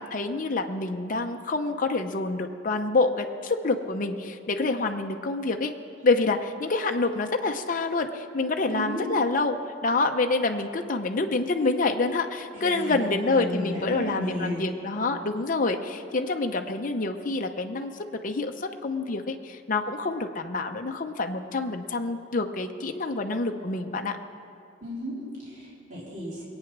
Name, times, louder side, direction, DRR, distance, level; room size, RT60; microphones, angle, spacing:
voice 1, 0.0-5.7 6.0-9.6 9.8-17.9 18.2-24.2, left 3 dB, 45° left, 4 dB, 0.7 m, -27 dB
voice 2, 8.7-9.0 12.5-14.6 24.8-26.4, equal, 40° right, -7 dB, 3.8 m, -34 dB
21.0 x 8.9 x 6.0 m, 2.5 s
head